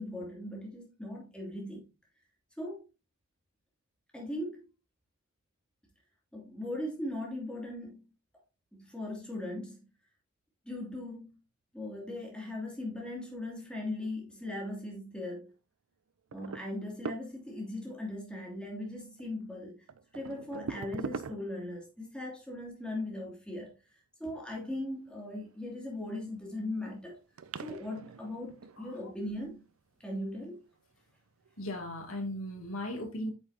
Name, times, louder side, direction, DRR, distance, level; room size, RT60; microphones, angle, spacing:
voice 1, 0.0-1.8 2.6-2.8 4.1-4.7 6.3-8.0 8.7-9.9 10.6-11.4 11.7-15.5 16.3-19.9 20.1-23.7 24.2-27.2 27.6-29.7 30.0-30.6, left 1 dB, 5° left, 2.8 m, -39 dB
sound 1, 16.3-17.7 19.2-19.3 19.9-21.8 25.6-26.3 26.9-27.0 27.4-29.4 30.3-30.6 31.5-31.6 32.0-32.1, right 5 dB, 90° right, 0.5 m, -42 dB
voice 2, 31.6-33.3, left 1 dB, 90° left, 2.6 m, -37 dB
8.7 x 7.1 x 2.8 m
head